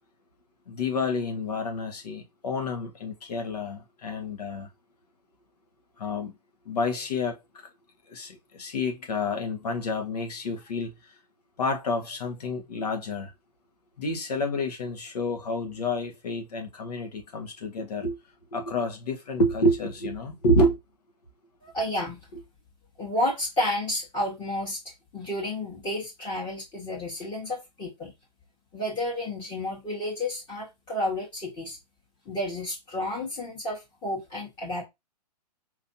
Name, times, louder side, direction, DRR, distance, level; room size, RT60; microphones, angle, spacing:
voice 1, 0.7-4.7 6.0-6.3 6.6-7.4 8.1-10.9 11.6-13.3 14.0-18.1 18.5-20.8, left 1 dB, 70° left, 1.6 m, -28 dB
voice 2, 21.6-22.2 23.0-28.1 28.7-31.8 32.2-34.8, left 1 dB, 20° left, 1.6 m, -31 dB
4.5 x 3.2 x 2.8 m
hypercardioid pair, 130°, 21 cm